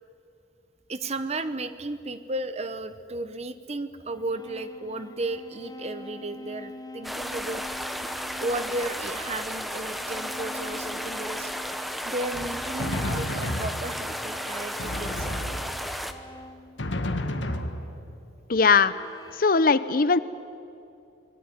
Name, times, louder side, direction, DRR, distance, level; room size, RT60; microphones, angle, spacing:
voice 1, 0.9-7.6 8.4-11.5 12.0-15.4, right 2 dB, 35° right, 12 dB, 1.0 m, -34 dB
sound 1, 1.4-1.6 4.0-17.1 18.8-19.6, left 2 dB, 20° left, 0.9 m, -45 dB
sound 2, 7.0-16.1, equal, ahead, 1.1 m, -34 dB
Drum, 12.3-14.2 14.8-16.1 16.8-18.3, left 1 dB, 75° left, 1.8 m, -32 dB
voice 2, 18.5-18.9 19.3-20.2, left 4 dB, 50° left, 15 dB, 0.8 m, -20 dB
26.0 x 20.5 x 9.7 m, 2.7 s
head